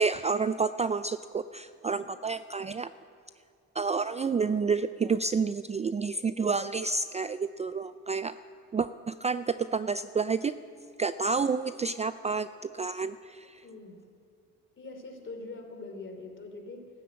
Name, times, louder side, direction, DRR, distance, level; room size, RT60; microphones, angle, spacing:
voice 1, 0.0-2.9 3.8-8.4 8.7-10.5 11.0-13.6, right 5 dB, 25° right, 13 dB, 0.3 m, -29 dB
voice 2, 13.6-14.0 14.8-16.9, left 3 dB, 40° left, 3 dB, 3.1 m, -43 dB
13.0 x 12.0 x 8.5 m, 2.5 s
cardioid pair, 90°, 30 cm